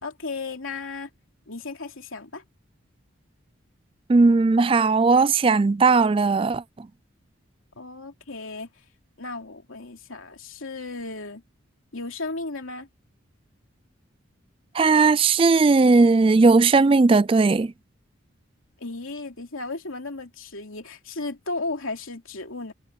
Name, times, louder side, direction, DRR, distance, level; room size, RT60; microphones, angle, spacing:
voice 1, 0.0-1.1 1.5-2.4 7.8-8.7 9.2-11.4 11.9-12.9 18.8-22.7, left 3 dB, 85° left, 2.9 m, -34 dB
voice 2, 4.1-6.9 14.7-17.7, right 4 dB, 25° right, 0.3 m, -18 dB
head